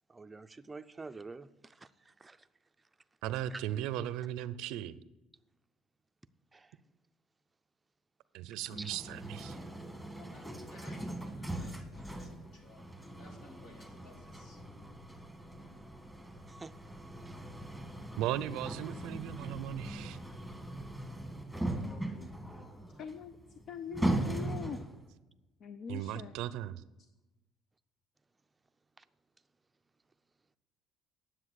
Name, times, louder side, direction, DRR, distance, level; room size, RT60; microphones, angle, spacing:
voice 1, 0.1-2.5 3.5-3.6 6.5-6.7 8.8-8.9 16.5-16.7 17.3-17.4 29.0-29.1, right 3 dB, 15° right, 0.5 m, -47 dB
voice 2, 3.2-5.0 8.3-9.6 18.2-20.2 25.9-26.8, right 12 dB, 85° right, 0.5 m, -37 dB
sound 1, 8.7-25.1, right 1 dB, 5° left, 1.5 m, -40 dB
voice 3, 10.0-12.8 13.1-14.6, left 2 dB, 70° left, 2.6 m, -58 dB
voice 4, 21.5-23.0, left 1 dB, 25° left, 4.0 m, -55 dB
voice 5, 23.0-23.4 23.7-24.8 25.6-26.3, left 7 dB, 55° left, 0.6 m, -42 dB
10.0 x 7.7 x 6.4 m
cardioid pair, 120°, 0 cm